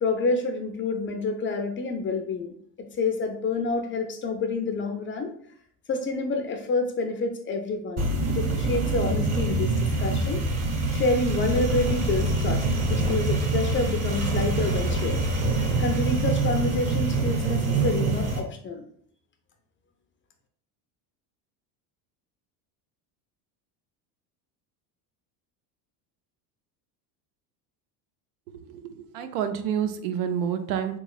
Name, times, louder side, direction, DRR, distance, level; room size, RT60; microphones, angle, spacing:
voice 1, 0.0-5.3 5.9-10.4 10.9-15.3 15.8-18.9, left 3 dB, 30° left, 5 dB, 0.4 m, -28 dB
sound 1, 8.0-18.4, right 3 dB, 35° right, 0.8 m, -25 dB
voice 2, 28.5-31.0, right 8 dB, 85° right, 9 dB, 0.6 m, -29 dB
3.5 x 3.1 x 2.3 m, 0.62 s
supercardioid pair, 105°, 46 cm